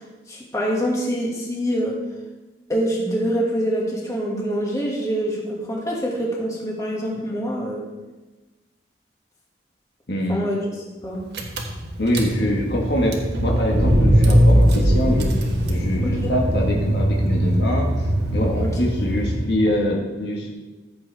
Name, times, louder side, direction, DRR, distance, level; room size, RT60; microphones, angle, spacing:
voice 1, 0.3-2.0 2.7-7.8 10.3-11.2 16.0-16.3 18.6-18.7, equal, 20° left, -3 dB, 1.9 m, -25 dB
voice 2, 10.1-10.5 12.0-15.3 15.7-17.9 18.3-20.5, equal, 65° left, -1 dB, 1.5 m, -24 dB
Car / Engine, 11.0-11.1 11.3-19.7, equal, 65° right, 1.4 m, -20 dB
14.0 x 7.2 x 3.4 m, 1.2 s
head